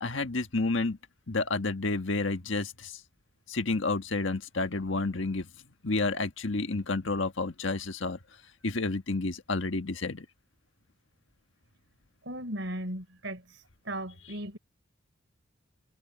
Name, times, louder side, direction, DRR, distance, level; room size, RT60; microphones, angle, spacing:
voice 1, 0.0-1.0 1.3-2.9 3.5-5.5 5.8-8.2 8.6-10.2, left 3 dB, 85° left, 1.6 m, -30 dB
voice 2, 12.3-14.6, right 1 dB, 75° right, 4.1 m, -37 dB
head